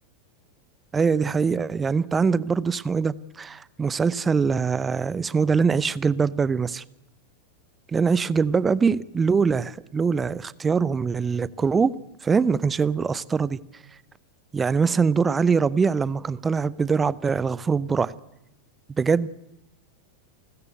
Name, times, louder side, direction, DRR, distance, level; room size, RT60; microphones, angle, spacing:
voice 1, 0.9-6.8 7.9-11.9 12.2-13.6 14.5-18.1 19.0-19.3, right 5 dB, 15° right, 0.7 m, -23 dB
29.5 x 14.0 x 8.1 m
figure-of-eight pair, 90°, 0 cm